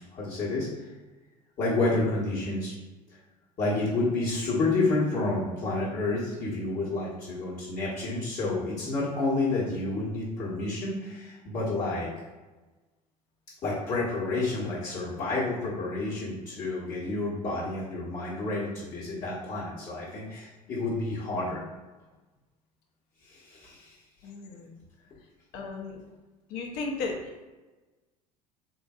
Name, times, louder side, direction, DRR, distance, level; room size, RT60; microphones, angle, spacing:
voice 1, 0.1-0.9 1.6-2.7 3.1-3.2 3.6-12.1 13.6-21.6 23.2-24.0, left 2 dB, 40° left, -8 dB, 1.1 m, -29 dB
voice 2, 24.2-24.7 25.5-26.0 26.5-27.5, left 3 dB, 55° left, 1 dB, 0.7 m, -35 dB
3.8 x 2.6 x 2.4 m, 1.2 s
figure-of-eight pair, 70°, 21 cm